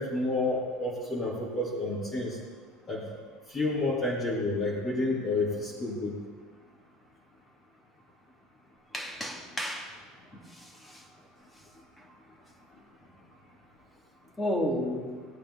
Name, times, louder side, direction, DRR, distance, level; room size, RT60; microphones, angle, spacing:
voice 1, 0.0-2.4 2.9-3.0 3.5-6.1, left 2 dB, 30° left, -7 dB, 3.5 m, -30 dB
voice 2, 8.9-10.0 10.5-11.0 14.4-15.3, left 1 dB, 15° left, 1 dB, 2.8 m, -32 dB
19.5 x 8.8 x 4.1 m, 1.5 s
hypercardioid pair, 90°, 0 cm